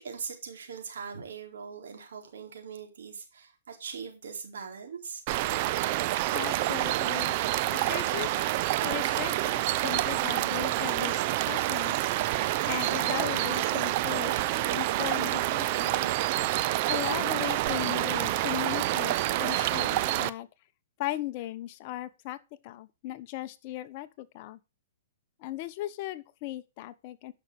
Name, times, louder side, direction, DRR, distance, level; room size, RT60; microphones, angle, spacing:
voice 1, 0.0-5.2, right 6 dB, 75° right, 4.0 m, -41 dB
sound 1, 5.3-20.3, right 16 dB, 40° right, 0.6 m, -28 dB
voice 2, 6.3-7.3 7.7-8.5 8.8-12.1 12.6-16.2 16.9-20.5 21.0-22.4 22.6-24.6 25.4-27.3, left 15 dB, 40° left, 1.1 m, -37 dB
10.5 x 6.2 x 4.8 m
hypercardioid pair, 145°, 0 cm